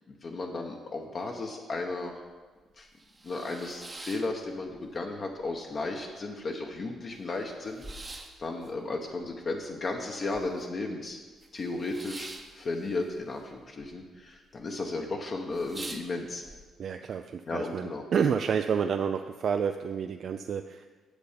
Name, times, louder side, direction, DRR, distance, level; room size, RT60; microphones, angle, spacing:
voice 1, 0.1-2.1 2.8-2.9 3.2-11.2 11.5-12.3 12.5-16.4 17.5-18.0, left 3 dB, 45° left, 1 dB, 0.9 m, -34 dB
sound 1, 1.8-1.9 2.3-2.4 2.8-5.0 5.3-6.0 6.4-6.5 6.7-10.8 11.1-13.9 14.2-14.7 15.1-15.2 15.5-16.6, right 2 dB, 25° right, 0.8 m, -45 dB
voice 2, 16.8-20.9, right 7 dB, 60° right, 7 dB, 0.4 m, -29 dB
8.3 x 6.9 x 5.1 m, 1.4 s
cardioid pair, 90°, 0 cm